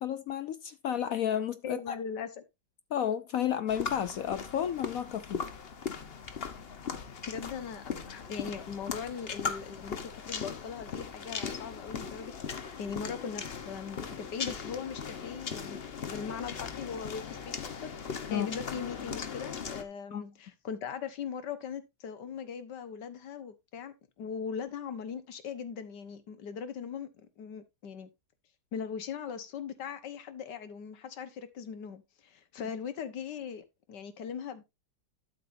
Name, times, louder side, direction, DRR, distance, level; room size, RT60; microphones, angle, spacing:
voice 1, 0.0-1.9 2.9-5.4 18.3-18.5 20.1-20.2, left 9 dB, 65° left, 0.9 m, -32 dB
voice 2, 1.6-2.4 6.9-12.3 12.8-27.1 27.4-28.1 28.7-34.6, left 6 dB, 85° left, 1.8 m, -40 dB
sound 1, 3.7-19.8, left 6 dB, 40° left, 1.0 m, -39 dB
12.5 x 6.7 x 2.6 m
omnidirectional pair, 1.8 m